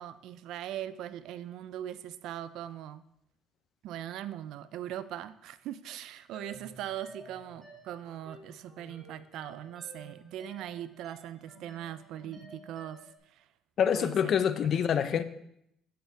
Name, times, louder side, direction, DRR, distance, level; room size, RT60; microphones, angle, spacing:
voice 1, 0.0-3.0 3.8-13.5 13.9-14.3 14.7-15.1, right 11 dB, 70° right, 14 dB, 0.4 m, -40 dB
sound 1, 6.3-13.2, equal, 5° right, 2.4 m, -53 dB
voice 2, 13.8-15.2, left 8 dB, 55° left, 12 dB, 0.5 m, -26 dB
7.6 x 6.6 x 3.4 m, 0.76 s
supercardioid pair, 80°, 0 cm